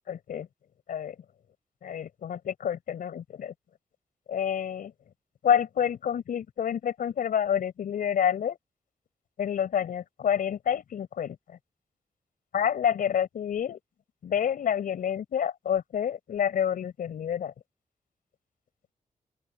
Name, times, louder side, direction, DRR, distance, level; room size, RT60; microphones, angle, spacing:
voice 1, 0.1-0.5 0.9-1.2 1.8-3.5 4.3-4.9 5.4-8.6 9.4-11.6 12.5-13.8 14.2-17.5, left 8 dB, 90° left, 5.4 m, -28 dB
open air
cardioid pair, 80°, 14 cm